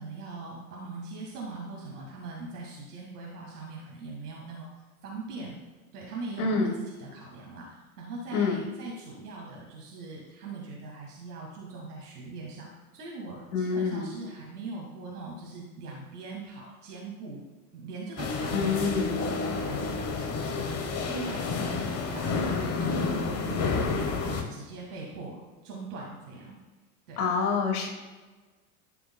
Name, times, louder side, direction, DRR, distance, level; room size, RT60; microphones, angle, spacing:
voice 1, 0.0-4.7 5.0-5.6 5.9-12.7 12.9-17.4 17.7-18.9 19.2-26.5 27.1-27.3, right 3 dB, 80° right, -3 dB, 1.7 m, -41 dB
voice 2, 6.4-6.7 8.3-8.6 13.5-14.1 18.5-19.2 27.2-27.9, left 5 dB, 75° left, 3 dB, 1.4 m, -27 dB
sound 1, 18.2-24.4, left 4 dB, 35° left, 1.1 m, -30 dB
11.0 x 6.9 x 2.2 m, 1.3 s
hypercardioid pair, 85°, 45 cm